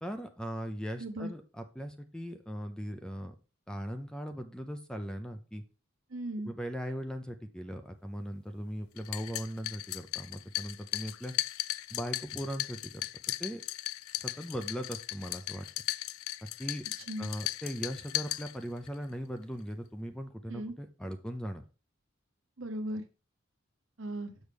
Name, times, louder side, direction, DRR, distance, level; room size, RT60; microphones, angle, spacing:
voice 1, 0.0-3.4 3.7-5.6 6.4-11.3 11.9-13.1 13.4-13.6 14.2-15.6 16.6-16.8 17.2-21.6, equal, 5° left, 7 dB, 0.5 m, -39 dB
voice 2, 1.0-1.3 6.1-6.5 17.1-17.3 20.5-20.7 22.6-23.0 24.0-24.3, right 1 dB, 70° right, 7 dB, 1.0 m, -37 dB
sound 1, 9.0-19.0, left 16 dB, 85° left, 0.3 m, -37 dB
6.4 x 6.4 x 3.4 m, 0.33 s
head